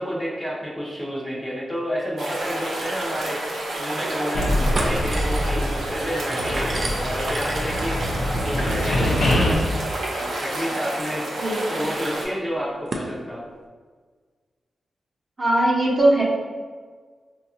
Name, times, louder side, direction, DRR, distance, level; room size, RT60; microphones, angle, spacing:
voice 1, 0.0-3.4 3.8-4.5 4.8-8.0 8.4-9.5 10.4-11.2 11.7-13.4, equal, 10° left, -6 dB, 0.7 m, -30 dB
sound 1, 2.2-12.2, right 1 dB, 90° right, 0.7 m, -29 dB
sound 2, 2.7-2.8 3.1-3.2 3.7-4.2 4.5-13.1, right 2 dB, 50° right, 0.4 m, -36 dB
sound 3, 4.3-6.0 6.3-9.5, left 1 dB, 80° left, 0.6 m, -24 dB
voice 2, 11.4-11.9 15.4-16.2, right 1 dB, 30° right, -5 dB, 0.9 m, -20 dB
3.9 x 2.4 x 2.7 m, 1.5 s
cardioid pair, 85°, 0 cm